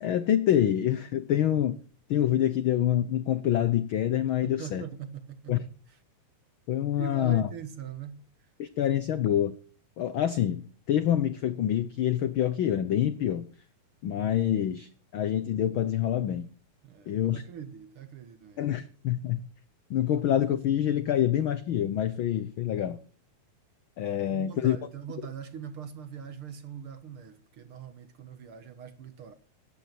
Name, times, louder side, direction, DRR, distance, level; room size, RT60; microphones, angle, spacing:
voice 1, 0.0-1.8 2.1-4.8 5.5-5.6 6.7-7.5 8.6-9.5 10.0-13.5 14.0-16.5 17.1-17.4 18.6-19.4 19.9-23.0 24.0-24.8, left 11 dB, 80° left, 1.1 m, -26 dB
voice 2, 4.4-5.6 5.9-6.0 7.0-8.3 16.8-18.7 24.3-29.3, right 8 dB, 55° right, 1.8 m, -42 dB
17.0 x 13.5 x 4.5 m
omnidirectional pair, 3.3 m